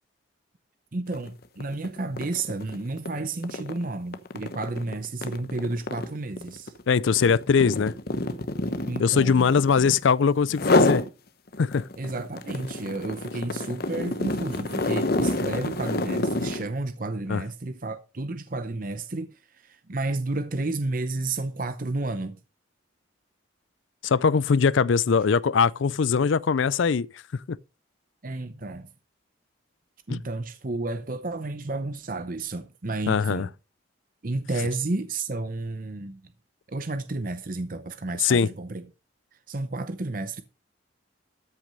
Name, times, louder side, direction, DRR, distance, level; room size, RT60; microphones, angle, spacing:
voice 1, 0.9-6.7 8.8-9.5 12.0-22.4 28.2-28.9 30.1-33.5 34.2-36.3 36.7-38.9 39.3-40.4, right 2 dB, 45° right, 0.7 m, -31 dB
sound 1, 1.1-1.3 1.6-10.1 10.5-11.1 11.5-16.7, left 2 dB, 50° left, 0.9 m, -28 dB
voice 2, 6.9-7.9 9.0-11.0 11.6-11.9 17.3-17.4 24.0-27.1 27.3-27.6 30.1-30.2 33.1-33.5 38.2-38.5, left 5 dB, 70° left, 0.4 m, -21 dB
13.5 x 6.1 x 5.3 m
head